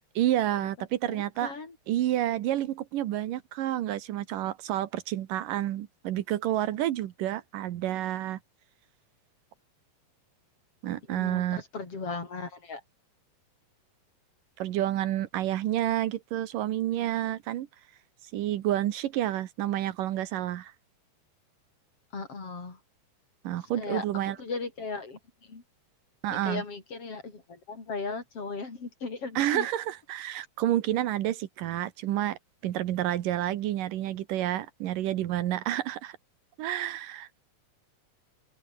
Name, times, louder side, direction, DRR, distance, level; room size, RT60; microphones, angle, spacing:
voice 1, 0.2-1.5 1.9-8.4 10.8-11.6 14.6-17.7 18.3-20.7 23.4-24.4 26.2-26.6 29.4-32.4 32.6-36.2 36.6-37.4, right 13 dB, 75° right, 2.7 m, -29 dB
voice 2, 1.0-1.8 11.1-12.8 22.1-22.8 23.7-24.0 24.4-25.6 26.3-29.7, left 4 dB, 40° left, 5.1 m, -37 dB
omnidirectional pair, 3.9 m